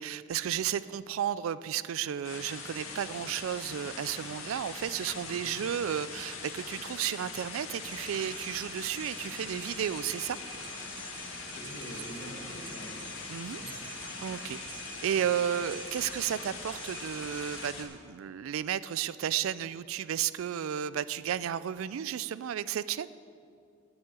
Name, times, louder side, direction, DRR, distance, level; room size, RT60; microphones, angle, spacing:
voice 1, 0.0-10.4 13.3-13.6 14.2-14.6 15.0-23.1, right 9 dB, 80° right, 17 dB, 0.3 m, -33 dB
sound 1, 2.2-17.8, left 4 dB, 85° left, 1.8 m, -42 dB
voice 2, 5.2-5.6 11.0-13.0 13.6-13.7, equal, 30° left, -1 dB, 2.0 m, -46 dB
sound 2, 7.8-17.7, right 4 dB, 25° right, 0.7 m, -47 dB
8.7 x 8.1 x 9.1 m, 2.4 s
head